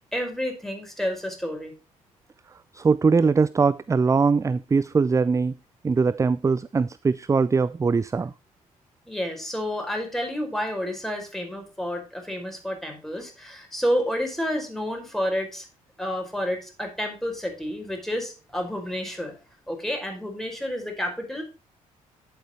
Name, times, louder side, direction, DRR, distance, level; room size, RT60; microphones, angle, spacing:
voice 1, 0.1-1.7 9.1-15.7 16.0-19.4 19.7-21.4, equal, ahead, 5.1 m, -30 dB
voice 2, 2.7-5.5 5.8-8.3, right 4 dB, 20° right, 0.4 m, -21 dB
11.0 x 8.0 x 3.2 m
hypercardioid pair, 45°, 18 cm